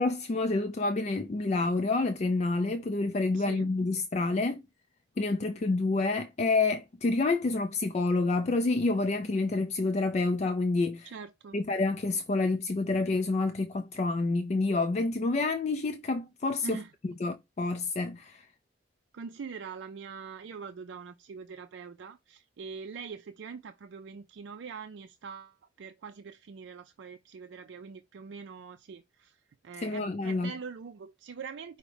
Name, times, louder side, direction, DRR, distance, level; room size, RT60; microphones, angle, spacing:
voice 1, 0.0-4.6 5.2-11.1 11.5-16.8 17.0-18.5 29.8-30.5, left 3 dB, 35° left, 0.3 m, -28 dB
voice 2, 3.3-3.7 11.0-11.6 16.6-16.9 19.1-29.4 29.6-31.8, right 5 dB, 70° right, 0.4 m, -43 dB
5.1 x 2.1 x 4.7 m
head